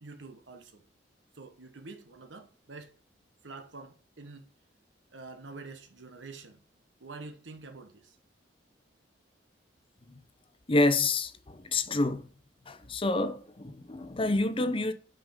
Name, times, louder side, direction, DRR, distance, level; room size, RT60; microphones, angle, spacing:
voice 1, 0.0-0.8 1.3-2.9 3.4-4.5 5.1-6.6 7.0-8.2, right 3 dB, 90° right, 1.2 m, -46 dB
voice 2, 10.7-12.3 12.7-14.9, left 2 dB, 30° left, 0.7 m, -28 dB
6.3 x 5.0 x 5.1 m
head